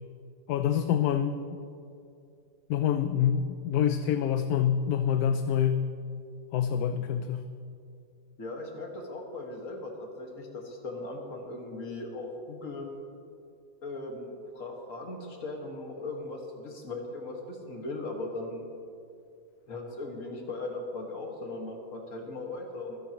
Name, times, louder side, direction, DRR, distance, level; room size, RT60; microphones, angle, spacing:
voice 1, 0.5-1.4 2.7-5.8 6.5-7.4, left 9 dB, 75° left, 9 dB, 1.0 m, -26 dB
voice 2, 8.4-12.9 13.8-18.6 19.7-23.0, left 2 dB, 50° left, 1 dB, 2.0 m, -38 dB
25.5 x 10.5 x 3.0 m, 2.5 s
omnidirectional pair, 1.7 m